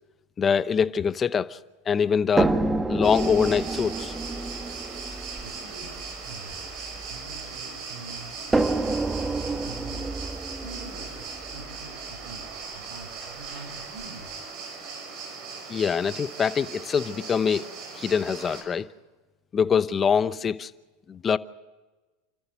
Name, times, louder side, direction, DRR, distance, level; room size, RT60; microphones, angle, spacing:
voice 1, 0.4-1.6 1.9-2.6 2.9-4.1 15.7-17.7 17.9-18.9 19.5-20.7 21.1-21.4, left 6 dB, 25° left, 0.9 m, -24 dB
sound 1, 2.4-7.6 8.5-12.5 13.5-13.6 14.0-14.1, right 2 dB, 15° right, 1.3 m, -29 dB
sound 2, 3.0-18.6, right 5 dB, 50° right, 6.3 m, -39 dB
voice 2, 5.2-10.2 10.5-12.5 12.7-14.3, right 3 dB, 75° right, 6.4 m, -45 dB
29.5 x 14.5 x 6.5 m
supercardioid pair, 115°, 0 cm